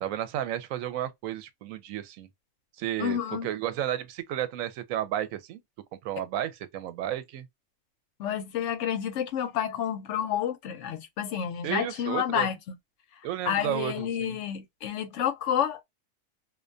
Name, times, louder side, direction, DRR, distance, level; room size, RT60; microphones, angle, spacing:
voice 1, 0.0-2.3 2.8-5.6 5.9-7.5 11.6-12.5 13.2-14.4, right 11 dB, 90° right, 1.0 m, -32 dB
voice 2, 3.0-3.5 8.2-12.6 13.5-15.8, left 9 dB, 70° left, 0.9 m, -29 dB
2.4 x 2.2 x 2.4 m
omnidirectional pair, 1.4 m